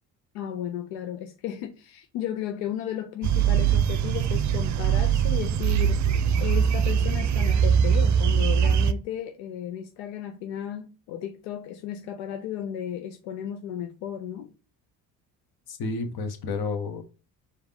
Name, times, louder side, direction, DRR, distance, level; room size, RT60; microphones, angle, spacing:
voice 1, 0.3-6.0 6.4-14.5, left 10 dB, 85° left, 0.6 m, -34 dB
sound 1, 3.2-8.9, right 8 dB, 45° right, 0.5 m, -22 dB
voice 2, 15.7-17.0, left 3 dB, 60° left, 1.2 m, -30 dB
4.8 x 2.8 x 3.5 m
supercardioid pair, 65°, 42 cm